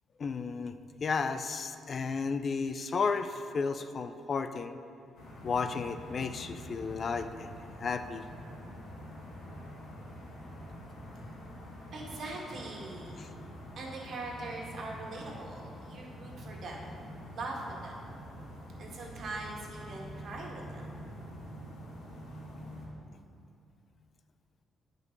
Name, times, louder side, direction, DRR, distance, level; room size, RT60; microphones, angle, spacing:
voice 1, 0.2-4.8 5.4-7.5 7.8-8.2 13.2-13.3, left 5 dB, 45° left, 10 dB, 0.4 m, -33 dB
sound 1, 5.1-22.9, equal, 85° left, 2.2 m, -46 dB
voice 2, 11.9-13.2 13.8-16.9 17.3-18.0 18.8-20.9, right 2 dB, 60° right, -2 dB, 1.9 m, -41 dB
9.4 x 5.3 x 6.6 m, 2.8 s
cardioid pair, 90°, 0 cm